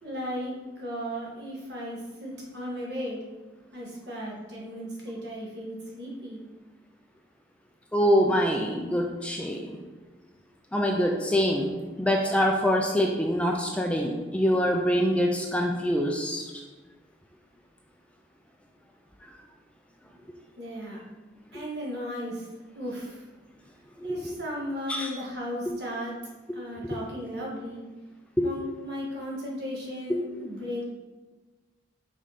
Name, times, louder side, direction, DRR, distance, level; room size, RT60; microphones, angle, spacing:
voice 1, 0.0-3.2 3.7-6.4 20.6-21.0 21.5-22.5 22.7-23.2 24.0-26.1 26.5-27.9 28.4-30.9, equal, 60° right, -4 dB, 1.7 m, -35 dB
voice 2, 7.9-9.7 10.7-11.7 12.0-16.4 24.2-24.3 24.9-25.1 26.8-27.0 28.4-28.5 30.1-30.2, equal, 5° left, 1 dB, 0.4 m, -25 dB
5.5 x 4.8 x 4.1 m, 1.2 s
head